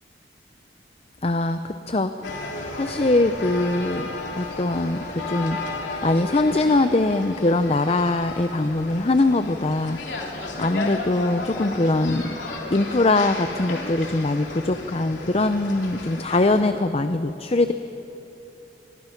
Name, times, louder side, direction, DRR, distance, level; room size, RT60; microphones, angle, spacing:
voice 1, 1.2-4.1 4.4-5.6 6.0-12.3 12.7-17.7, left 2 dB, 35° left, 9 dB, 0.6 m, -22 dB
sound 1, 2.2-16.6, left 2 dB, 80° left, 3.2 m, -34 dB
25.5 x 22.5 x 5.9 m, 2.9 s
head